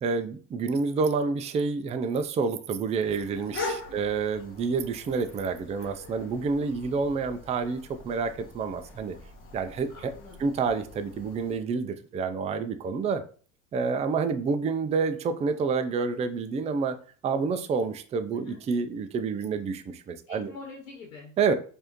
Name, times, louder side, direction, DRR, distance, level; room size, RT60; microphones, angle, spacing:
voice 1, 0.0-9.1 9.5-10.1 10.4-13.2 13.7-17.0 17.2-20.5 21.4-21.5, right 5 dB, 20° right, 9 dB, 0.4 m, -28 dB
sound 1, 3.0-11.6, left 3 dB, 30° left, 1.0 m, -42 dB
voice 2, 9.9-10.5 18.3-18.6 20.3-21.3, left 4 dB, 85° left, 0 dB, 1.1 m, -45 dB
4.7 x 2.6 x 2.9 m, 0.41 s
hypercardioid pair, 85°, 39 cm